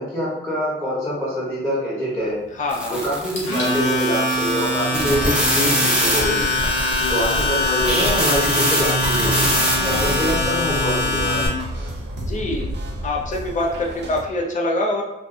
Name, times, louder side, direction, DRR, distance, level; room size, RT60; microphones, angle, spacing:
voice 1, 0.0-2.3 2.9-6.5 7.1-9.5 9.8-11.4, equal, 15° left, -10 dB, 1.0 m, -25 dB
voice 2, 2.6-3.0 6.9-7.2 9.9-10.2 12.2-12.7 13.0-15.0, left 2 dB, 40° left, 0 dB, 0.5 m, -25 dB
sound 1, 2.7-10.4, equal, 5° right, 0.6 m, -23 dB
Domestic sounds home sounds, 3.4-11.5, left 1 dB, 80° left, 0.8 m, -23 dB
sound 2, 9.2-14.2, equal, 65° right, 0.6 m, -31 dB
2.5 x 2.2 x 2.5 m, 0.96 s
cardioid pair, 100°, 19 cm